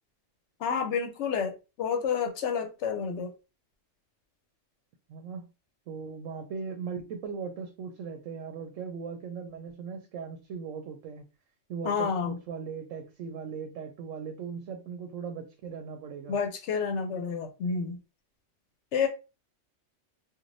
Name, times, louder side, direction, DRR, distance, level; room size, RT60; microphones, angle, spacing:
voice 1, 0.6-3.3 11.8-12.4 16.3-18.0 18.9-19.1, left 6 dB, 70° left, 0.8 m, -29 dB
voice 2, 5.1-5.5 5.9-11.2 11.7-16.4, right 6 dB, 85° right, 0.9 m, -38 dB
3.2 x 2.4 x 2.5 m
omnidirectional pair, 1.3 m